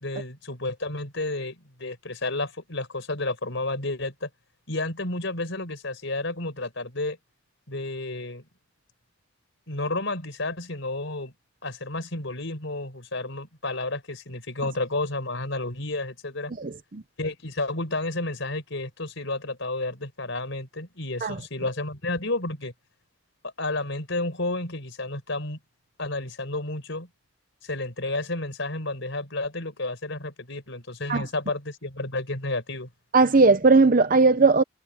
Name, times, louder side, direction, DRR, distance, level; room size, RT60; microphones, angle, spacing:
voice 1, 0.0-4.3 4.7-7.2 7.7-8.4 9.7-11.3 11.6-16.5 17.2-22.7 23.4-25.6 26.0-27.1 27.6-32.9, left 2 dB, 65° left, 4.7 m, -31 dB
voice 2, 16.6-17.0 21.2-21.4 31.1-31.2 33.1-34.6, right 3 dB, 40° right, 0.7 m, -18 dB
head